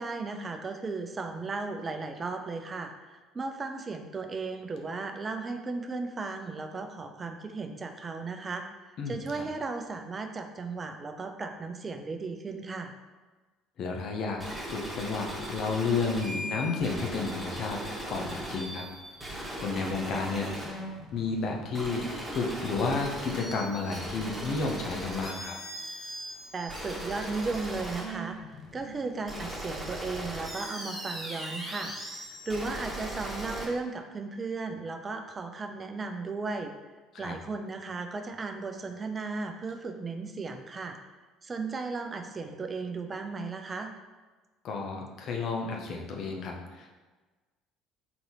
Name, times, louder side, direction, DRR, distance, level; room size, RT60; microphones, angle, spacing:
voice 1, 0.0-12.9 26.5-31.9 32.5-36.7 37.2-41.0 41.4-43.9, right 3 dB, 30° right, 6 dB, 0.5 m, -35 dB
voice 2, 13.8-14.4 14.7-17.8 18.1-18.8 19.6-20.5 21.1-25.5 37.2-37.3 44.6-46.9, left 4 dB, 55° left, 1 dB, 0.7 m, -31 dB
sound 1, 14.4-33.7, right 1 dB, 5° right, 1.4 m, -38 dB
3.9 x 3.9 x 3.0 m, 1.3 s
hypercardioid pair, 60°, 0 cm